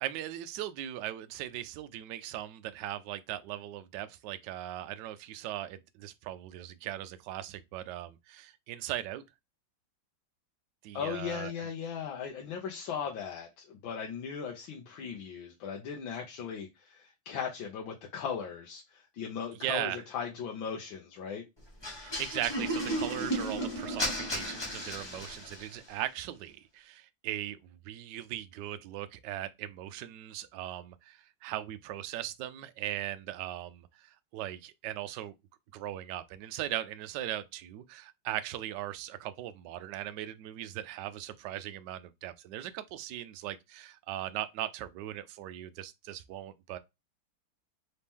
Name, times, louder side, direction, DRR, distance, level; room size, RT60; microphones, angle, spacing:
voice 1, 0.0-9.2 10.8-11.5 19.6-20.0 22.0-27.6 27.8-35.3 35.7-46.8, right 13 dB, 75° right, 1.0 m, -39 dB
voice 2, 10.9-21.4, left 7 dB, 70° left, 1.5 m, -38 dB
sound 1, 21.8-25.8, equal, 20° left, 0.8 m, -34 dB
4.2 x 2.9 x 3.5 m
omnidirectional pair, 2.3 m